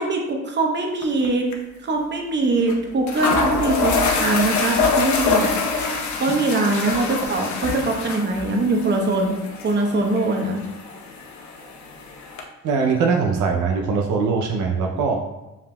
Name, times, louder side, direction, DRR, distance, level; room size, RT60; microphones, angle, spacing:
voice 1, 0.0-1.5 1.8-5.5 6.2-9.4 9.6-10.6, right 2 dB, 35° right, 1 dB, 0.8 m, -22 dB
sound 1, 1.0-1.3 1.5-1.6 2.7-2.8 3.1-12.4, left 4 dB, 70° left, 0.7 m, -25 dB
voice 2, 12.6-15.3, right 5 dB, 75° right, 1 dB, 0.6 m, -21 dB
7.1 x 2.7 x 2.2 m, 0.99 s
cardioid pair, 90°, 30 cm